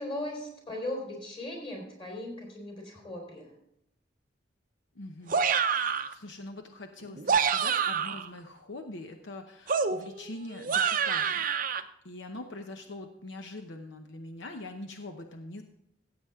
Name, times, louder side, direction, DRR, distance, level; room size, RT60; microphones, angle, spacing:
voice 1, 0.0-3.5, left 1 dB, 30° left, 0 dB, 3.6 m, -38 dB
voice 2, 4.9-5.4 5.7-11.5 11.7-15.6, left 2 dB, 80° left, 5 dB, 0.8 m, -43 dB
sound 1, 5.3-6.1 7.1-8.3 9.7-11.8, right 6 dB, 45° right, 0.6 m, -27 dB
15.5 x 8.1 x 3.6 m, 0.77 s
head